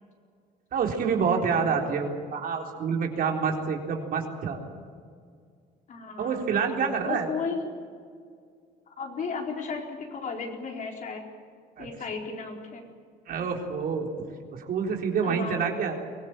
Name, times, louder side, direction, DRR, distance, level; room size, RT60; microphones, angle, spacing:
voice 1, 0.7-4.6 6.2-7.3 11.8-11.9 13.3-14.1 14.5-16.0, right 6 dB, 60° right, 2 dB, 4.0 m, -27 dB
voice 2, 5.9-6.5 7.1-7.7 9.0-11.3 11.8-12.8 15.2-15.6, left 4 dB, 50° left, 1 dB, 4.4 m, -34 dB
23.5 x 17.0 x 9.1 m, 2.1 s
cardioid pair, 110°, 17 cm